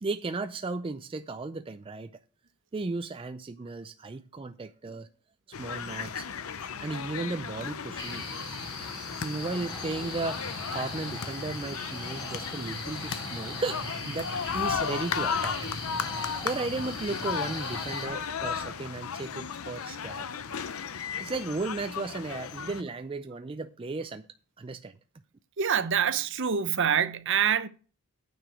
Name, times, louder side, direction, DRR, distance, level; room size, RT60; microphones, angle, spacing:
voice 1, 0.0-2.1 2.7-5.1 5.6-6.3 6.8-8.3 9.2-15.6 16.4-20.3 21.0-24.3 24.6-24.9, right 3 dB, 25° right, 0.4 m, -35 dB
sound 1, 5.5-22.8, left 7 dB, 70° left, 0.6 m, -35 dB
sound 2, 8.0-18.1, left 1 dB, 20° left, 2.4 m, -39 dB
voice 2, 25.6-27.7, right 8 dB, 55° right, 0.7 m, -25 dB
9.3 x 4.8 x 7.8 m
head